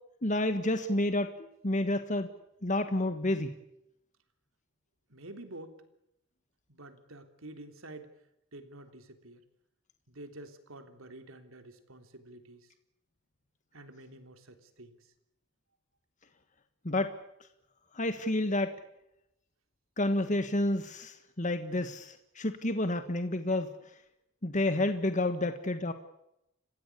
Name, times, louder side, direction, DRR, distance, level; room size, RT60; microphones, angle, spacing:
voice 1, 0.2-2.3 2.6-3.5 16.8-17.1 17.9-18.8 20.0-23.7 24.4-25.9, left 1 dB, 35° left, 9 dB, 1.5 m, -30 dB
voice 2, 5.1-5.8 6.7-8.1 8.5-9.4 10.1-12.7 13.7-15.0, right 1 dB, 75° right, 7 dB, 3.4 m, -49 dB
30.0 x 16.5 x 8.5 m, 0.83 s
head